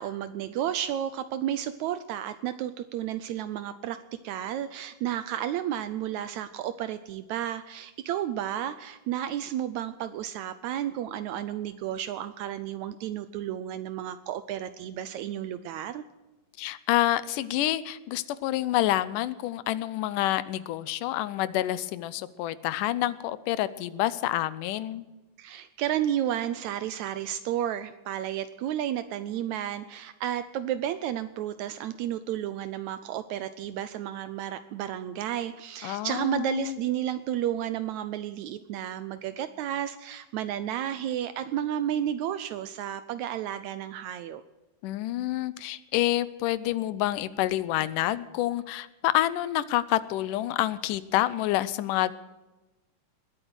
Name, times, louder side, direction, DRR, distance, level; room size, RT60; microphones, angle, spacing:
voice 1, 0.0-16.0 25.4-44.4, right 11 dB, 75° right, 13 dB, 1.7 m, -32 dB
voice 2, 16.6-25.0 35.8-36.8 44.8-52.1, left 14 dB, 80° left, 17 dB, 2.2 m, -28 dB
20.0 x 8.9 x 6.2 m, 1.1 s
omnidirectional pair, 3.8 m